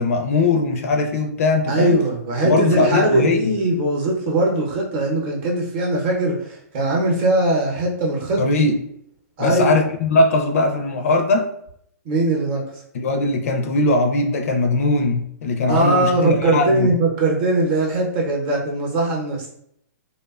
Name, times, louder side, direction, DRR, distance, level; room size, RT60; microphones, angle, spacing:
voice 1, 0.0-2.0 2.4-3.5 8.4-8.8 9.4-11.5 12.9-16.9, left 2 dB, 55° left, 5 dB, 0.4 m, -20 dB
voice 2, 1.7-8.4 9.4-9.8 12.0-12.6 15.7-19.5, right 2 dB, 35° right, -1 dB, 0.7 m, -20 dB
2.7 x 2.2 x 2.3 m, 0.71 s
hypercardioid pair, 150°, 9 cm